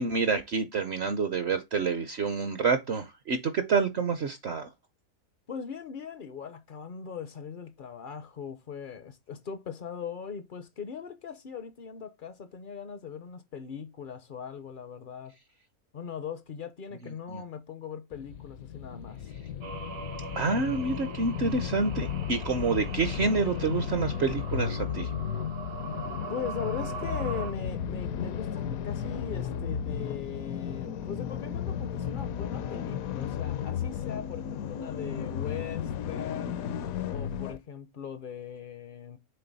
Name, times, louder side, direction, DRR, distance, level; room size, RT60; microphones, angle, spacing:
voice 1, 0.0-4.7 17.0-17.4 20.3-25.1, right 4 dB, 55° right, 0.8 m, -28 dB
voice 2, 5.5-15.3 15.9-19.3 26.3-36.7 37.1-39.2, left 7 dB, 55° left, 0.6 m, -40 dB
sound 1, 18.1-37.6, left 8 dB, 75° left, 1.0 m, -34 dB
sound 2, 19.6-27.5, right 6 dB, 80° right, 1.5 m, -42 dB
6.8 x 3.8 x 3.9 m
omnidirectional pair, 1.6 m